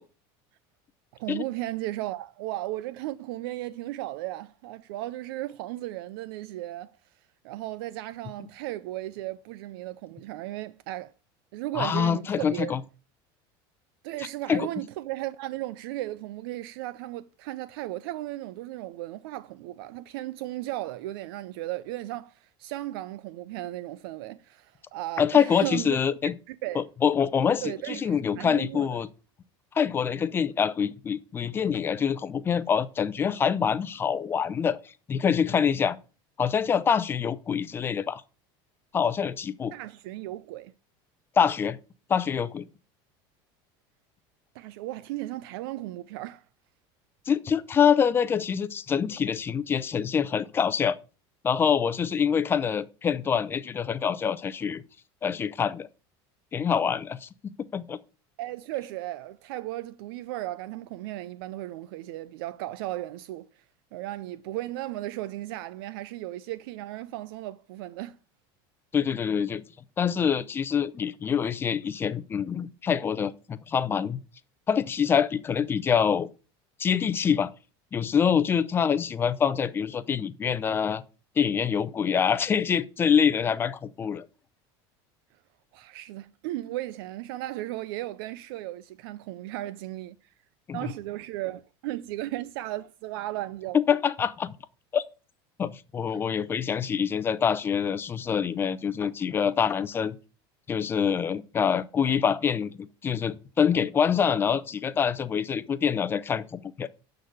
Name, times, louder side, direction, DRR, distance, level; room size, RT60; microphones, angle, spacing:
voice 1, 1.2-6.9 7.4-11.1 11.5-12.8 14.0-26.0 26.5-26.8 27.6-28.9 39.7-40.7 44.5-46.4 58.4-63.6 63.9-68.2 85.7-90.3 90.7-93.8 96.1-96.2, right 16 dB, 75° right, 0.5 m, -35 dB
voice 2, 11.7-12.8 14.5-14.7 25.2-26.3 26.7-29.1 29.7-34.8 35.1-36.0 36.4-38.2 38.9-39.7 41.4-41.8 42.1-42.6 47.3-51.0 51.4-54.8 55.2-55.9 56.5-57.3 57.7-58.0 68.9-69.6 70.0-74.2 74.7-76.3 76.8-77.5 77.9-81.0 81.4-84.3 90.7-90.9 93.7-94.5 94.9-95.0 95.6-100.2 100.7-106.9, left 7 dB, 20° left, 0.6 m, -25 dB
12.0 x 4.0 x 7.8 m
cardioid pair, 165°, 12 cm